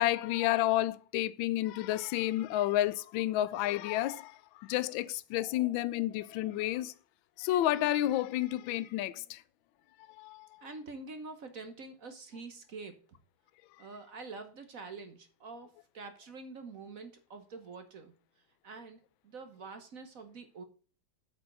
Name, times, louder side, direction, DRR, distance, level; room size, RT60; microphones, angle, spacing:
voice 1, 0.0-6.9 7.4-9.4 10.1-10.7, left 14 dB, 80° left, 1.3 m, -31 dB
voice 2, 10.6-13.0 13.8-18.1 18.6-20.6, right 3 dB, 50° right, 1.3 m, -46 dB
7.9 x 4.8 x 6.6 m
omnidirectional pair, 2.2 m